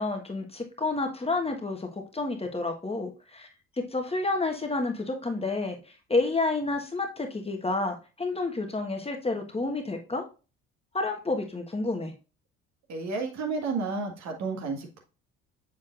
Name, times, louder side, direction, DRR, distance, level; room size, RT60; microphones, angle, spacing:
voice 1, 0.0-3.5 3.8-10.2 10.9-12.1, left 3 dB, 15° left, 3 dB, 1.4 m, -30 dB
voice 2, 12.9-15.0, right 4 dB, 50° right, 2 dB, 1.9 m, -31 dB
7.2 x 6.5 x 2.5 m, 0.32 s
figure-of-eight pair, 55°, 34 cm